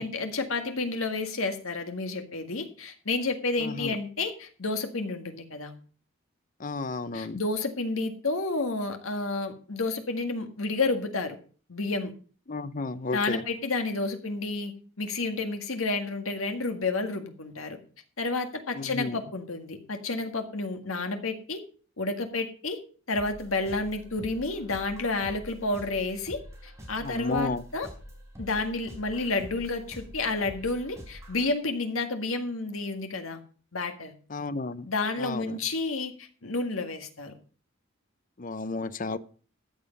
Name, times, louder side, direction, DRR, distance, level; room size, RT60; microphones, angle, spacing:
voice 1, 0.0-5.7 7.1-11.4 11.7-12.1 13.1-14.7 15.0-17.8 18.2-21.6 22.0-22.8 23.1-27.9 28.4-33.4 33.7-34.1 34.9-37.4, left 3 dB, 85° left, 1.9 m, -30 dB
voice 2, 3.6-4.0 6.6-7.4 12.5-13.4 18.7-19.2 27.0-27.6 34.3-34.9 35.2-35.6 38.4-39.2, left 3 dB, 40° left, 0.7 m, -32 dB
sound 1, 23.1-31.5, equal, 15° right, 3.8 m, -46 dB
13.5 x 8.0 x 5.3 m
head